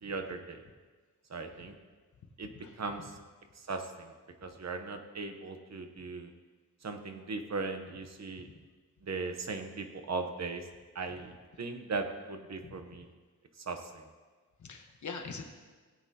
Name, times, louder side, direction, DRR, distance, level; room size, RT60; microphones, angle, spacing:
voice 1, 0.0-0.6 1.3-1.7 2.4-3.2 3.6-4.1 4.4-6.3 6.8-8.5 9.0-10.7 10.9-13.1 13.6-14.1, right 3 dB, 55° right, 6 dB, 0.9 m, -38 dB
voice 2, 2.4-2.8 12.6-12.7 14.6-15.4, left 4 dB, 60° left, 4 dB, 1.1 m, -44 dB
17.5 x 8.6 x 2.8 m, 1.4 s
wide cardioid pair, 155°, 33 cm